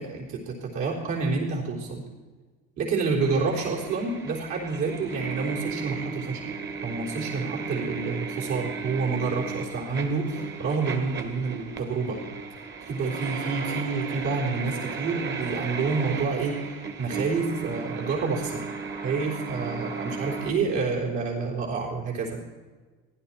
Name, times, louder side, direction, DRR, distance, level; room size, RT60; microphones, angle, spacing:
voice 1, 0.0-2.0 2.8-6.4 6.8-12.2 12.9-18.6 19.0-22.3, right 4 dB, 65° right, -2 dB, 4.0 m, -28 dB
sound 1, 3.2-20.5, right 5 dB, 35° right, 1.7 m, -35 dB
15.0 x 11.5 x 4.5 m, 1.4 s
supercardioid pair, 105°, 31 cm